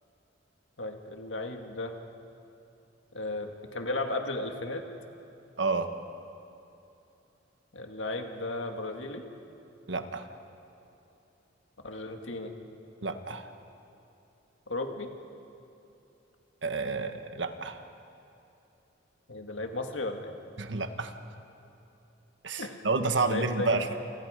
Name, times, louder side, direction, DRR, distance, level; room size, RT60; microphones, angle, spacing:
voice 1, 0.8-1.9 3.1-4.9 7.7-9.3 11.8-12.5 14.7-15.1 19.3-20.3 22.6-22.8 23.2-23.9, left 2 dB, 85° left, 4 dB, 2.0 m, -35 dB
voice 2, 5.6-5.9 9.9-10.3 13.0-13.4 16.6-17.8 20.6-21.1 22.4-23.9, right 3 dB, 70° right, 7 dB, 1.5 m, -30 dB
29.0 x 24.0 x 5.1 m, 2.9 s
head